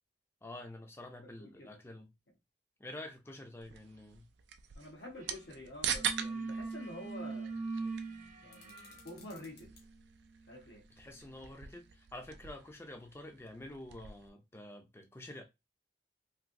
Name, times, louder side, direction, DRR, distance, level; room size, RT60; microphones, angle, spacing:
voice 1, 0.4-2.1 2.8-4.3 11.0-15.4, left 1 dB, 15° left, 0.5 m, -48 dB
voice 2, 1.4-1.8 4.8-7.5 8.4-9.7 10.5-10.8, left 1 dB, 75° left, 1.3 m, -48 dB
sound 1, 3.6-14.3, right 8 dB, 70° right, 0.4 m, -43 dB
sound 2, 5.2-5.4 5.7-12.4, right 3 dB, 45° right, 0.8 m, -43 dB
sound 3, 8.5-9.9, left 5 dB, 60° left, 1.1 m, -60 dB
3.2 x 2.7 x 2.6 m
head